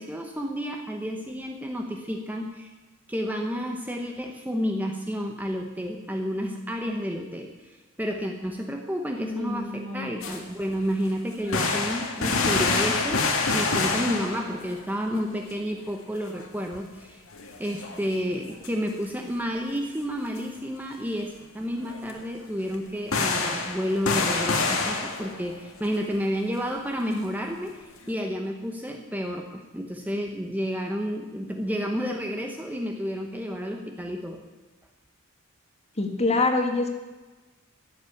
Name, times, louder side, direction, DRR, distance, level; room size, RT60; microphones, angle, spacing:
voice 1, 0.0-2.7 3.1-13.2 13.5-17.2 17.6-34.4, equal, 10° right, 3 dB, 0.9 m, -31 dB
voice 2, 9.1-10.1 36.0-36.9, left 3 dB, 30° left, 4 dB, 1.7 m, -26 dB
sound 1, 10.2-10.4 10.7-10.8 11.3-14.8 15.1-15.2 15.5-15.6 16.3-16.4 16.7-17.0 17.3-18.7 19.8-19.9 20.4-20.5 21.9-22.1 22.7-22.8 23.1-26.0, left 3 dB, 60° left, 1.8 m, -27 dB
14.0 x 8.2 x 8.4 m, 1.2 s
head